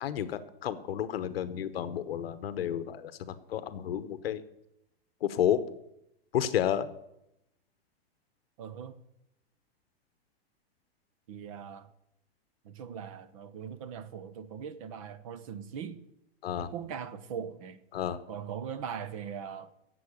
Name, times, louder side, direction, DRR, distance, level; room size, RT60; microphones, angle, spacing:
voice 1, 0.0-4.4 5.2-5.6 6.3-6.9 16.4-16.7 17.9-18.2, left 10 dB, 65° left, 1.0 m, -31 dB
voice 2, 8.6-9.0 11.3-11.9 12.6-16.0 16.6-17.8 18.3-19.7, right 7 dB, 30° right, 0.7 m, -40 dB
11.5 x 7.9 x 9.8 m
supercardioid pair, 175°, 32 cm